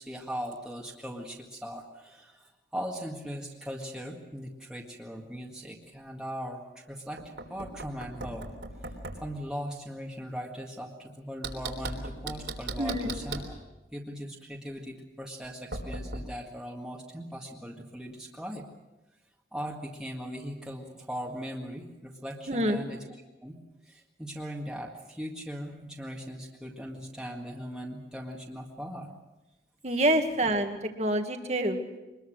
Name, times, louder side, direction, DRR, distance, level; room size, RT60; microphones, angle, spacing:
voice 1, 0.0-8.5 9.2-13.5 13.9-18.7 19.5-23.1 23.4-23.6 23.8-29.1 29.9-30.0, equal, 5° right, -2 dB, 1.9 m, -39 dB
Knock, 7.2-9.3 11.4-13.5 15.7-16.2, right 2 dB, 80° right, 3.6 m, -37 dB
voice 2, 12.8-13.1 22.5-22.8 29.8-31.8, right 1 dB, 35° right, 5 dB, 1.9 m, -27 dB
24.5 x 21.0 x 6.4 m, 1.0 s
head